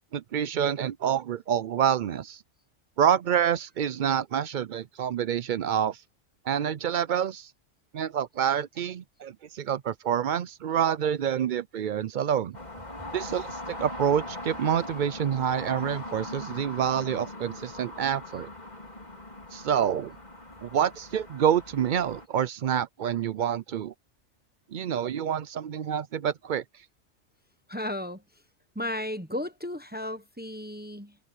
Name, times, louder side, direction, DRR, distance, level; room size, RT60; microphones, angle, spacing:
voice 1, 0.1-2.4 3.0-6.0 6.4-7.5 7.9-12.6 13.1-18.5 19.5-20.2 20.6-23.9 24.7-26.6, right 9 dB, 60° right, 0.5 m, -27 dB
sound 1, 12.5-22.3, left 1 dB, 35° left, 3.9 m, -40 dB
voice 2, 27.7-28.2 28.7-31.2, left 1 dB, 10° right, 0.8 m, -34 dB
omnidirectional pair, 1.3 m